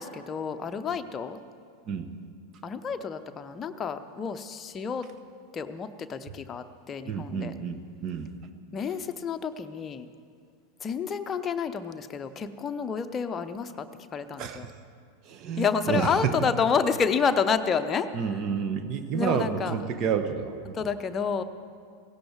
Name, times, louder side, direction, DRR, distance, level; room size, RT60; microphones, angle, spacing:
voice 1, 0.0-1.4 2.6-5.1 5.5-7.5 8.7-10.1 10.8-13.9 14.1-14.7 15.6-18.1 19.1-19.8 20.7-21.4, left 6 dB, 20° left, 8 dB, 0.8 m, -29 dB
voice 2, 7.0-8.3 14.4-14.7 15.2-16.4 18.1-20.8, right 7 dB, 35° right, 9 dB, 1.2 m, -30 dB
17.0 x 16.5 x 4.7 m, 2.2 s
figure-of-eight pair, 90°, 0 cm